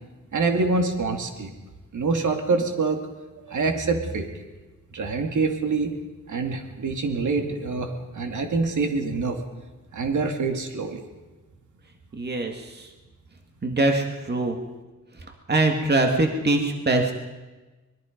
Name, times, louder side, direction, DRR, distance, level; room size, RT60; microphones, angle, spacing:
voice 1, 0.3-1.5 1.9-3.0 3.5-4.3 4.9-6.0 6.3-9.4 9.9-11.0, right 4 dB, 75° right, 4 dB, 2.4 m, -25 dB
voice 2, 12.2-12.9 13.6-14.6 15.5-17.1, right 2 dB, 35° right, 3 dB, 2.1 m, -23 dB
25.0 x 21.0 x 5.3 m, 1.2 s
wide cardioid pair, 120°, 30 cm